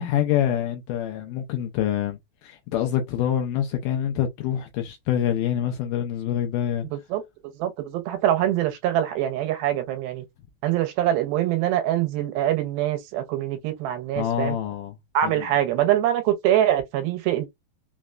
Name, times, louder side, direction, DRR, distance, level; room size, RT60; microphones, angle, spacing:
voice 1, 0.0-6.9 14.2-15.0 15.2-15.3, left 10 dB, 85° left, 1.9 m, -26 dB
voice 2, 6.9-10.2 10.6-14.6 15.1-17.5, right 12 dB, 85° right, 2.5 m, -24 dB
5.8 x 2.1 x 2.3 m
omnidirectional pair, 4.4 m